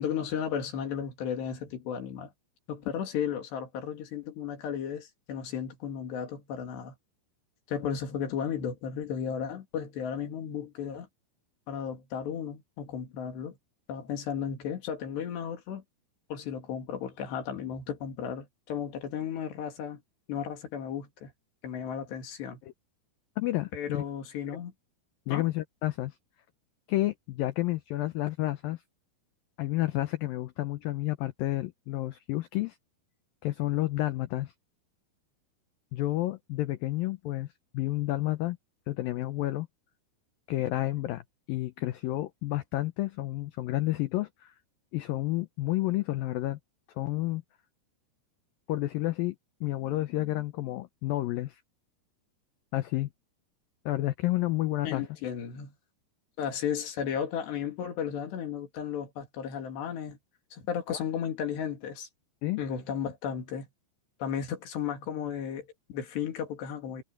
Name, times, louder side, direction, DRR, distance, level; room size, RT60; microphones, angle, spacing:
voice 1, 0.0-2.3 2.7-6.9 7.7-11.1 11.7-13.6 13.9-15.8 16.3-20.0 20.3-21.3 21.6-22.6 23.7-24.7 25.3-25.4 54.8-55.7 56.4-60.2 60.5-62.1 62.6-63.7 64.2-67.0, left 8 dB, 70° left, 4.9 m, -34 dB
voice 2, 23.4-24.0 25.3-26.1 26.9-28.8 29.6-32.8 33.4-34.5 35.9-37.5 37.7-38.6 38.9-39.7 40.5-41.2 41.5-44.5 44.9-46.6 47.0-47.4 48.7-49.4 49.6-51.6 52.7-53.1 53.9-55.0 60.9-61.0 62.4-62.6, left 16 dB, 85° left, 2.0 m, -30 dB
omnidirectional pair, 5.1 m